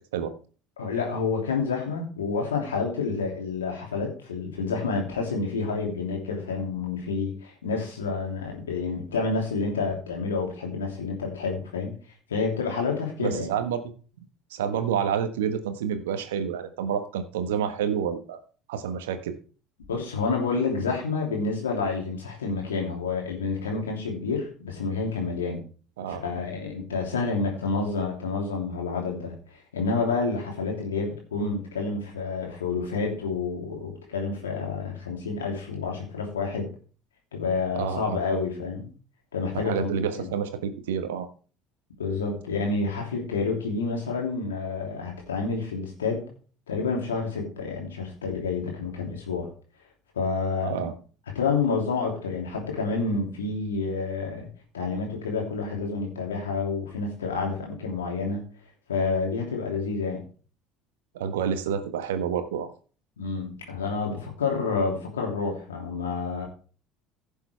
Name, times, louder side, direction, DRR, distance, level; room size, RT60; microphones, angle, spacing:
voice 1, 0.8-12.0 12.3-13.5 19.9-25.6 26.1-36.7 37.3-38.9 39.3-39.9 40.2-40.3 42.0-46.3 46.7-49.5 50.1-50.9 51.3-58.4 58.9-60.2 63.2-66.5, left 4 dB, 85° left, 0 dB, 2.9 m, -29 dB
voice 2, 13.2-13.9 14.5-18.4 18.7-19.3 26.0-26.3 37.7-38.2 39.5-41.3 50.6-50.9 61.1-62.7, right 8 dB, 75° right, 9 dB, 1.3 m, -29 dB
15.5 x 7.0 x 3.3 m, 0.39 s
hypercardioid pair, 65°, 0 cm